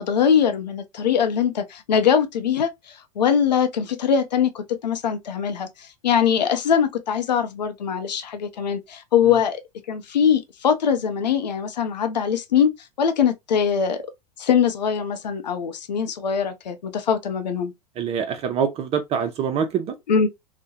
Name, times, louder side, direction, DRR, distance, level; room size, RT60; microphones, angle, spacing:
voice 1, 0.0-9.6 9.9-12.7 13.0-14.0 14.4-17.7 20.1-20.3, left 7 dB, 85° left, 0.6 m, -22 dB
voice 2, 18.0-19.9, right 7 dB, 30° right, 0.4 m, -25 dB
2.4 x 2.1 x 2.7 m
hypercardioid pair, 105°, 21 cm